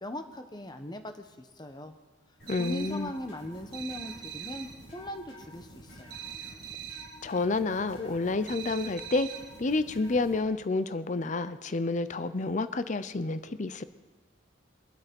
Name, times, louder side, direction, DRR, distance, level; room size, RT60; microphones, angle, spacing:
voice 1, 0.0-2.0 2.6-6.2, left 1 dB, 20° left, 7 dB, 1.0 m, -39 dB
sound 1, 2.4-10.4, equal, 65° left, 4.4 m, -50 dB
voice 2, 2.5-3.1 7.2-9.3 9.6-13.8, left 3 dB, 40° left, 13 dB, 0.6 m, -29 dB
sound 2, 2.5-3.1 3.7-4.8 6.1-7.2 8.5-9.6, right 9 dB, 55° right, 1.6 m, -42 dB
23.5 x 8.1 x 5.3 m, 1.4 s
head